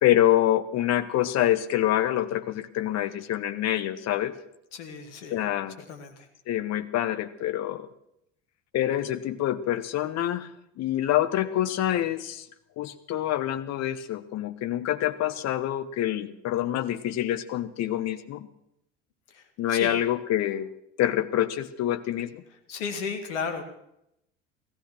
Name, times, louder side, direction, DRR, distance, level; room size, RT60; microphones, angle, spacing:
voice 1, 0.0-4.3 5.3-5.8 6.5-7.9 8.7-10.5 10.8-12.5 12.8-18.5 19.6-20.7 21.0-22.4, left 12 dB, 45° left, 13 dB, 1.2 m, -26 dB
voice 2, 4.7-5.4 5.9-6.1 19.3-19.4 19.7-19.9 22.7-23.6, left 6 dB, 65° left, 6 dB, 2.3 m, -33 dB
16.0 x 14.5 x 6.2 m, 0.79 s
figure-of-eight pair, 65°, 38 cm